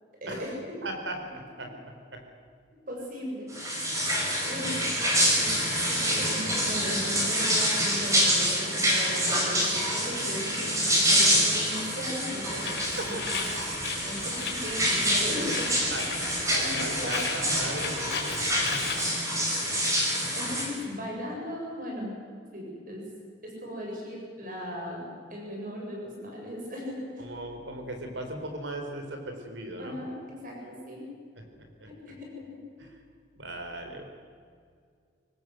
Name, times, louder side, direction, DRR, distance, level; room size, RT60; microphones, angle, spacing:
voice 1, 0.2-0.5 2.9-3.5 4.4-5.0 5.3-5.5 5.9-13.5 14.0-16.0 16.6-16.7 17.0-17.2 20.3-22.1 22.5-23.1 23.4-25.1 25.3-27.2 29.8-31.0 31.9-32.9, left 1 dB, 50° right, -1 dB, 7.3 m, -37 dB
voice 2, 0.8-1.7 2.1-2.2 4.7-4.8 5.2-5.3 12.6-13.2 15.9-16.1 16.5-18.8 27.2-30.0 31.8-31.9 33.4-34.0, right 1 dB, 85° right, 5 dB, 4.2 m, -37 dB
sound 1, 3.5-20.7, equal, 15° right, 5.7 m, -26 dB
Bird, 12.5-19.1, left 5 dB, 65° left, 5.1 m, -36 dB
24.0 x 19.0 x 7.8 m, 2.1 s
head